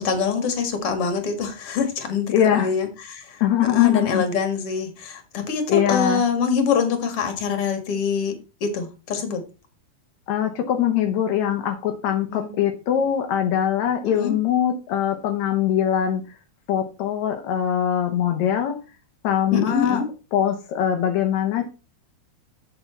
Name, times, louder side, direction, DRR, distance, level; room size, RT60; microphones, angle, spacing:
voice 1, 0.0-3.4 3.7-9.4 12.3-12.5 14.0-14.4 19.5-20.1, left 5 dB, 50° left, 7 dB, 2.1 m, -25 dB
voice 2, 2.3-2.7 3.4-4.2 5.7-6.2 10.3-16.2 16.7-18.7 19.2-20.0 20.3-21.7, left 10 dB, 80° left, 5 dB, 1.6 m, -22 dB
8.6 x 7.0 x 4.4 m, 0.31 s
omnidirectional pair, 4.6 m